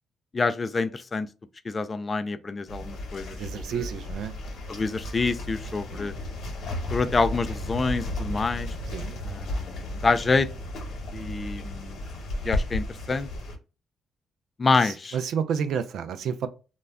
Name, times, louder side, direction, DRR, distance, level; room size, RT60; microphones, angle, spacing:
voice 1, 0.3-1.3 1.7-3.9 4.7-6.1 6.9-8.8 9.2-10.5 11.1-12.0 12.4-13.3 14.6-15.2, left 4 dB, 30° left, 0.3 m, -27 dB
sound 1, 2.7-13.6, left 1 dB, 65° left, 0.9 m, -34 dB
voice 2, 3.3-4.3 5.9-6.1 8.9-9.2 14.7-16.5, right 7 dB, 70° right, 0.4 m, -30 dB
2.2 x 2.1 x 3.4 m
cardioid pair, 90°, 0 cm